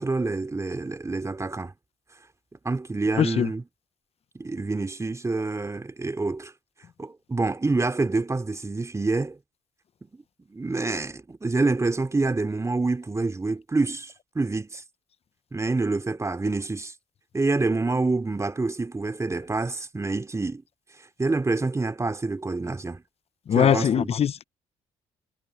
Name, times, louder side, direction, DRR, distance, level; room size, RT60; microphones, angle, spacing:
voice 1, 0.0-1.7 2.6-3.6 4.3-6.5 7.0-9.4 10.5-14.8 15.5-16.9 17.3-20.6 21.2-23.0 23.5-24.1, right 3 dB, 20° right, 3.1 m, -27 dB
voice 2, 3.2-3.5 23.5-24.4, left 8 dB, 50° left, 0.9 m, -21 dB
hypercardioid pair, 55°, 13 cm